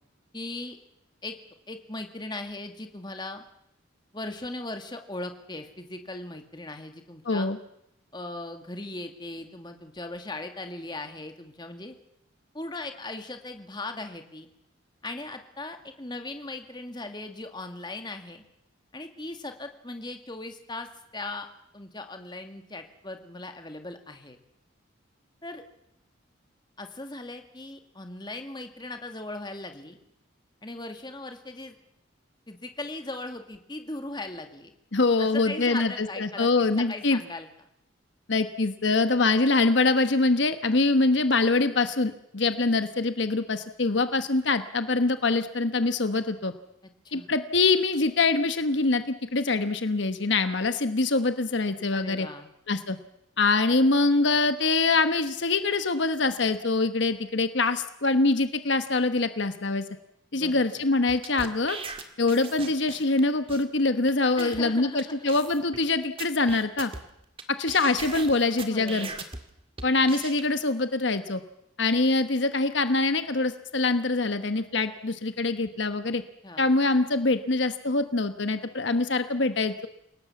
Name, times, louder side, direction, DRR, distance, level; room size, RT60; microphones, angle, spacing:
voice 1, 0.3-0.8 1.2-1.3 1.7-3.4 4.1-7.5 8.1-12.0 12.5-14.5 15.0-18.4 18.9-21.5 21.7-24.4 25.4-25.6 26.8-30.0 30.6-31.8 32.5-34.7 35.2-37.5 47.1-47.3 51.9-52.5 60.3-60.8 64.4-65.3 68.7-69.2 76.4-76.7, left 2 dB, 20° left, 6 dB, 2.0 m, -38 dB
voice 2, 7.2-7.6 34.9-37.2 38.3-46.5 47.1-52.3 52.7-53.0 53.4-59.8 60.3-61.8 62.2-66.9 67.6-69.1 69.8-71.4 71.8-76.2 76.6-79.9, left 3 dB, 65° left, 10 dB, 1.1 m, -24 dB
sound 1, 61.1-63.2 63.5-63.6 64.1-64.2 64.4-64.6 65.0-65.1 65.3-65.8 66.2-67.4 67.7-69.4 69.8-70.4, right 4 dB, 25° right, 2.0 m, -39 dB
28.5 x 18.0 x 7.1 m, 0.81 s
head